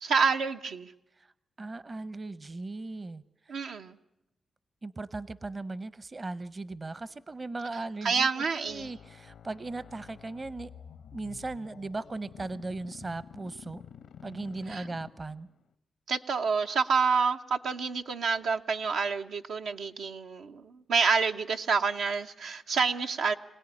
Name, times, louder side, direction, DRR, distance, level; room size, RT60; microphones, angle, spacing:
voice 1, 0.0-0.9 3.5-4.0 8.0-8.9 14.7-14.8 16.1-23.3, right 5 dB, 85° right, 4 dB, 0.8 m, -28 dB
voice 2, 1.6-3.7 4.8-10.7 11.1-13.8 14.2-15.5, right 3 dB, 35° right, 17 dB, 0.8 m, -38 dB
sound 1, 8.7-15.6, left 8 dB, 90° left, 1.0 m, -50 dB
25.5 x 17.0 x 9.9 m, 0.91 s
cardioid pair, 65°, 0 cm